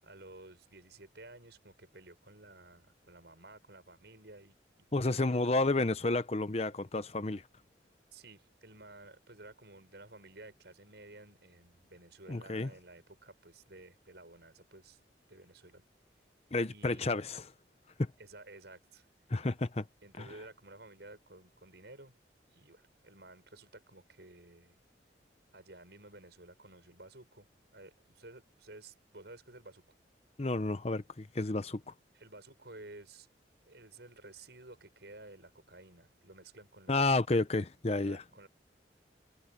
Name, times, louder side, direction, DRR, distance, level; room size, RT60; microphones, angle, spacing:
voice 1, 0.0-4.6 5.1-5.3 8.1-15.0 15.3-15.8 16.7-17.1 18.2-19.1 20.0-22.2 22.5-24.8 25.5-27.5 27.7-29.8 32.1-33.3 33.7-37.2 38.0-38.5, right 2 dB, 65° right, 6.9 m, -53 dB
voice 2, 4.9-7.4 12.3-12.7 16.5-17.4 18.0-18.1 19.3-19.8 20.2-20.3 30.4-31.9 36.9-38.2, left 2 dB, 35° left, 0.8 m, -31 dB
head